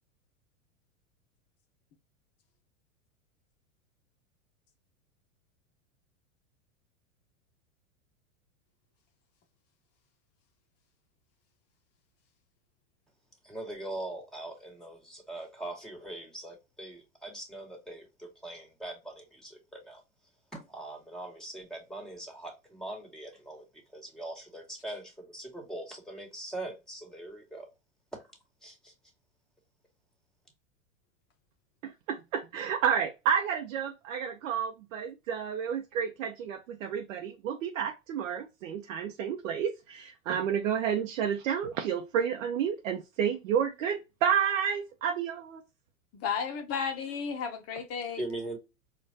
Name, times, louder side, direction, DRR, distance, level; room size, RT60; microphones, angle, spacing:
voice 1, 13.4-20.0 20.5-27.7 28.1-28.3 28.6-28.9 48.2-48.6, right 1 dB, ahead, 1.8 m, -41 dB
voice 2, 31.8-45.6, right 8 dB, 70° right, 0.7 m, -30 dB
voice 3, 46.1-48.2, left 6 dB, 35° left, 0.8 m, -33 dB
4.4 x 2.5 x 2.7 m
hypercardioid pair, 105°, 40 cm